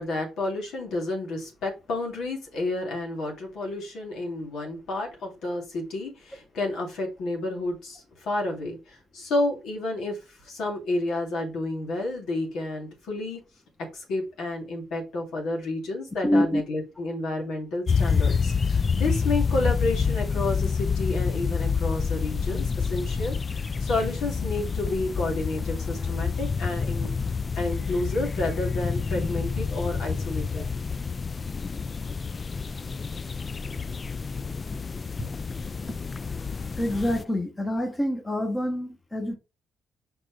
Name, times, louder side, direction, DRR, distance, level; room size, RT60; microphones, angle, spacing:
voice 1, 0.0-13.4 13.8-27.1 27.6-30.6, left 2 dB, 80° left, 2.7 m, -30 dB
voice 2, 16.2-16.6 30.6-30.7 36.8-39.4, left 1 dB, 15° left, 1.2 m, -26 dB
sound 1, 17.9-37.2, left 5 dB, 35° left, 0.3 m, -28 dB
5.2 x 4.0 x 4.9 m
cardioid pair, 90°, 0 cm